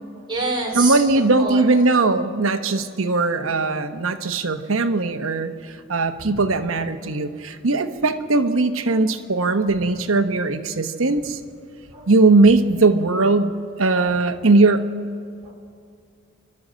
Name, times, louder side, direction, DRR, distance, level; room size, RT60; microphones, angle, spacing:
voice 1, 0.2-1.7 6.1-6.3 9.6-9.7 11.9-12.1 14.0-14.1 15.4-15.5, right 2 dB, 25° right, -2 dB, 4.2 m, -28 dB
voice 2, 0.7-5.5 5.9-11.4 12.1-13.5 13.8-14.9, right 3 dB, 80° right, 7 dB, 1.1 m, -19 dB
29.0 x 12.0 x 7.5 m, 2.2 s
head